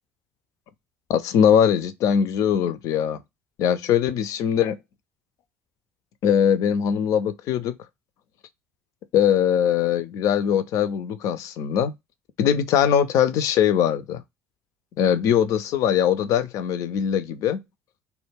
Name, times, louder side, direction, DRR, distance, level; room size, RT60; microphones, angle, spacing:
voice 1, 1.1-3.2 3.6-4.8 6.2-7.7 9.1-11.9 12.4-14.2 15.0-17.6, left 9 dB, 50° left, 0.4 m, -21 dB
2.1 x 2.1 x 3.2 m
figure-of-eight pair, 60°, 7 cm